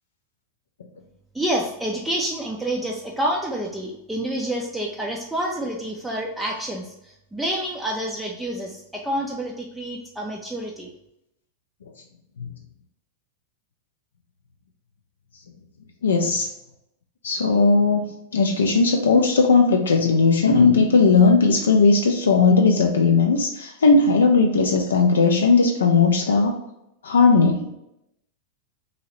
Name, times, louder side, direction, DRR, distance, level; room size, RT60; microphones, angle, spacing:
voice 1, 1.3-10.9, right 1 dB, 5° right, -2 dB, 0.4 m, -28 dB
voice 2, 16.0-16.5 17.2-26.5 27.0-27.7, left 4 dB, 65° left, 3 dB, 0.3 m, -17 dB
2.8 x 2.7 x 2.9 m, 0.83 s
figure-of-eight pair, 90°, 0 cm